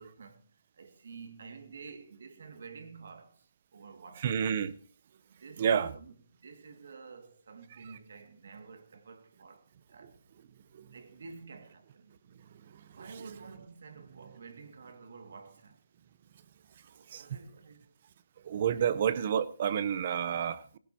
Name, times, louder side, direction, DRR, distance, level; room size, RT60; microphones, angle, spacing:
voice 1, 0.0-4.5 5.4-10.2 10.9-12.1 12.9-15.8 16.8-17.9 18.8-18.9, right 5 dB, 55° right, 2.2 m, -50 dB
voice 2, 4.2-4.8 5.6-5.9 10.7-10.9 17.1-17.2 18.4-20.8, right 8 dB, 35° right, 0.7 m, -29 dB
18.0 x 16.5 x 2.9 m
hypercardioid pair, 170°, 0 cm